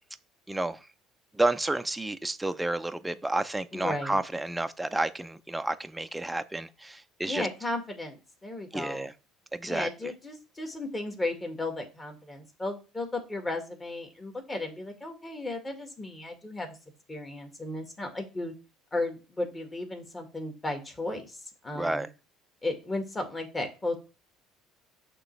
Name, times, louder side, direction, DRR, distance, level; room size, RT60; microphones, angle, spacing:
voice 1, 0.5-0.8 1.3-7.5 8.7-9.1 9.5-9.9 21.8-22.1, right 2 dB, 10° right, 0.5 m, -30 dB
voice 2, 3.7-4.2 7.3-9.1 9.7-16.8 17.1-18.5 18.9-21.4 21.6-22.1 22.6-23.9, left 2 dB, 20° left, 1.9 m, -34 dB
6.4 x 3.1 x 5.8 m
supercardioid pair, 85°, 0 cm